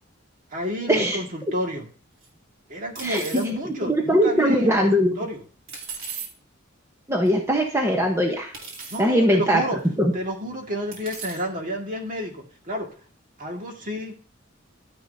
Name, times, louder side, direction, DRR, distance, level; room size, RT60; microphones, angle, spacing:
voice 1, 0.5-1.9 2.7-4.9 5.2-5.4 8.9-9.8 10.1-12.9 13.4-14.1, equal, 45° right, 1 dB, 2.0 m, -30 dB
sound 1, 2.2-2.3 3.0-3.5 5.7-6.3 7.3-7.4 8.5-9.0 9.9-10.0 10.9-11.4, right 5 dB, 80° right, 2.9 m, -36 dB
voice 2, 3.0-3.4 3.8-5.1 7.1-8.5 9.0-9.6 10.0-10.1, equal, 15° right, 0 dB, 1.0 m, -20 dB
11.5 x 9.8 x 2.7 m, 0.41 s
head